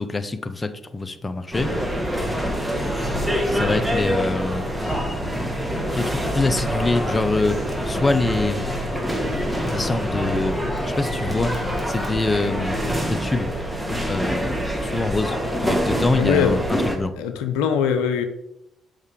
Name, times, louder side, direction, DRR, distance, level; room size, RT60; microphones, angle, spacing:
voice 1, 0.0-1.7 3.5-4.6 5.9-8.7 9.7-10.6 10.9-13.5 14.1-14.6 14.8-15.4 15.6-17.1, left 2 dB, 25° left, 10 dB, 0.7 m, -25 dB
sound 1, 1.5-17.0, equal, 5° right, 1.8 m, -25 dB
voice 2, 16.2-16.6 17.2-18.2, left 7 dB, 80° left, 7 dB, 0.5 m, -22 dB
6.4 x 5.5 x 3.6 m, 0.85 s
hypercardioid pair, 45°, 0 cm